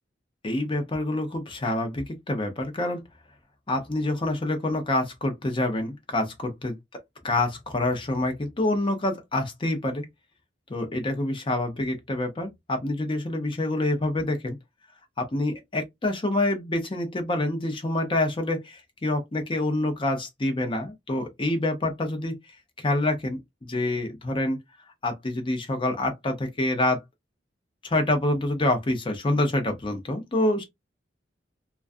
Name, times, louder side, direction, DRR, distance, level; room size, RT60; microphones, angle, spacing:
voice 1, 0.4-3.0 3.7-6.7 7.2-10.0 10.7-14.6 15.2-22.3 22.8-24.6 25.0-27.0 27.8-30.6, left 1 dB, 30° left, 0.6 m, -27 dB
2.3 x 2.3 x 2.5 m
head